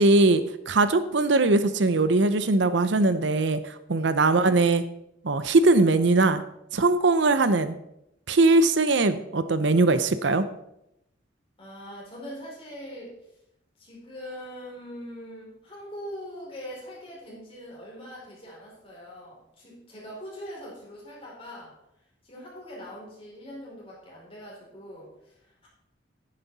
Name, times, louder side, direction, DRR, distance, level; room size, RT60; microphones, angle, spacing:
voice 1, 0.0-4.8 5.2-6.4 6.7-7.8 8.3-10.4, right 2 dB, 65° right, 12 dB, 0.7 m, -21 dB
voice 2, 11.6-13.2 13.8-21.8 22.2-25.7, equal, 30° left, -4 dB, 4.7 m, -42 dB
11.0 x 9.8 x 4.1 m, 0.82 s
head